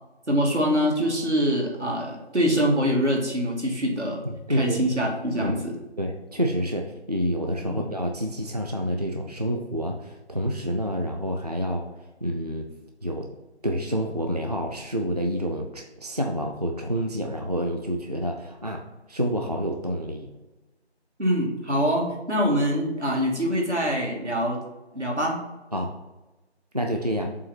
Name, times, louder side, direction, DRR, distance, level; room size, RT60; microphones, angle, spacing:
voice 1, 0.3-4.2 4.5-5.8 7.6-7.9 21.2-24.6 24.9-25.4, equal, 90° right, -1 dB, 2.2 m, -24 dB
voice 2, 4.2-5.0 5.4-5.5 6.0-11.9 12.2-12.7 13.0-13.3 13.6-18.8 19.1-20.3 25.7-25.9 26.7-27.3, equal, 40° right, 2 dB, 0.5 m, -28 dB
7.4 x 2.9 x 5.9 m, 1.1 s
figure-of-eight pair, 165°, 33 cm